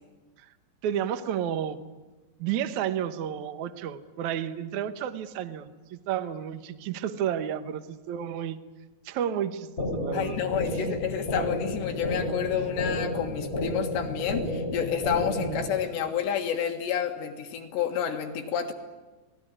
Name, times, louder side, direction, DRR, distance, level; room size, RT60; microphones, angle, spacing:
voice 1, 0.8-1.8 2.4-8.6 9.0-10.4 10.7-10.9 15.4-15.6, right 9 dB, 85° right, 10 dB, 1.6 m, -31 dB
sound 1, 9.8-15.8, left 1 dB, 15° left, 5.7 m, -31 dB
voice 2, 10.1-18.7, left 8 dB, 75° left, 4 dB, 3.9 m, -29 dB
29.0 x 20.0 x 10.0 m, 1.2 s
omnidirectional pair, 5.1 m